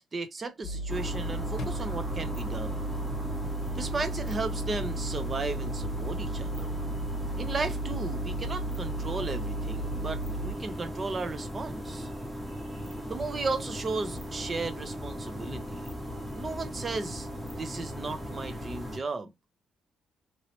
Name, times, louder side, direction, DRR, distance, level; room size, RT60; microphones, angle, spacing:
voice 1, 0.1-2.8 3.7-6.7 7.4-12.1 13.1-15.9 16.3-19.3, right 3 dB, 35° right, 0.7 m, -35 dB
sound 1, 0.6-10.5, right 2 dB, 60° left, 0.8 m, -34 dB
sound 2, 0.9-19.0, equal, 5° right, 1.0 m, -38 dB
3.1 x 2.8 x 2.9 m
cardioid pair, 90°, 0 cm